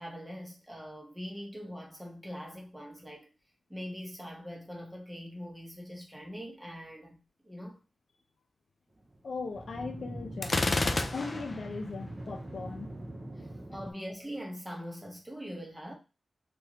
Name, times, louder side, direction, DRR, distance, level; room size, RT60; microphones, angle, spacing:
voice 1, 0.0-3.3 3.7-7.2 7.4-7.8 13.4-15.9, equal, 5° right, 1.0 m, -42 dB
sound 1, 8.9-13.9, right 1 dB, 25° right, 0.7 m, -43 dB
voice 2, 9.2-12.9, left 4 dB, 60° left, 0.7 m, -39 dB
Gunshot gunfire, 10.4-11.7, left 2 dB, 30° left, 0.4 m, -29 dB
3.5 x 3.0 x 2.9 m
wide cardioid pair, 135°, 0 cm